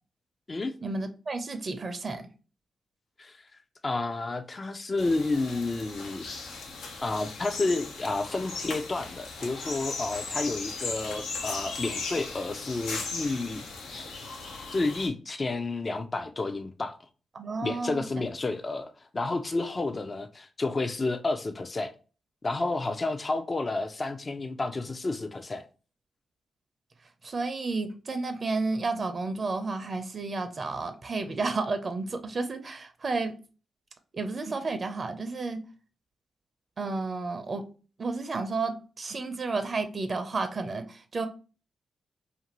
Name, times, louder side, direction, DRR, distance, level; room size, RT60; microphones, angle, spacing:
voice 1, 0.8-2.2 17.3-18.0 27.2-33.4 34.1-35.6 36.8-37.7 38.0-41.3, right 3 dB, 50° right, 0.5 m, -31 dB
voice 2, 3.8-6.3 7.0-14.1 14.7-17.0 17.6-21.9 22.4-25.7, left 3 dB, 40° left, 0.4 m, -30 dB
sound 1, 5.0-15.1, left 3 dB, 85° left, 0.5 m, -37 dB
2.6 x 2.5 x 2.9 m
supercardioid pair, 45°, 0 cm